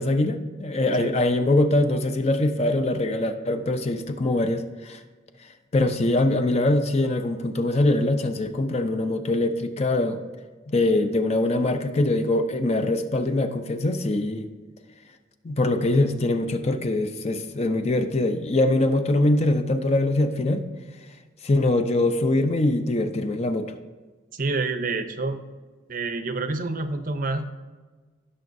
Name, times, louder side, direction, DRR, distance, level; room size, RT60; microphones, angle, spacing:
voice 1, 0.0-5.0 5.7-10.2 10.7-14.5 15.4-20.6 21.4-23.7, left 2 dB, 35° left, 8 dB, 0.5 m, -23 dB
voice 2, 24.3-25.4 25.9-27.5, right 3 dB, 45° right, 9 dB, 0.6 m, -28 dB
17.0 x 6.2 x 2.6 m, 1.3 s
head